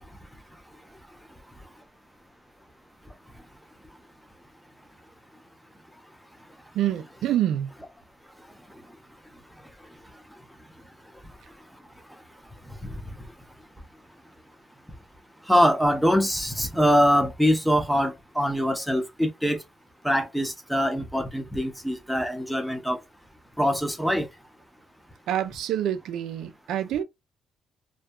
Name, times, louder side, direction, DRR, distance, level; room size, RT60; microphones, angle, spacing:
voice 1, 6.7-7.7 25.3-27.0, right 11 dB, 80° right, 0.3 m, -27 dB
voice 2, 12.8-13.3 15.5-19.6 20.0-23.0 23.6-24.3, equal, ahead, 0.6 m, -23 dB
2.7 x 2.2 x 2.2 m
cardioid pair, 90°, 0 cm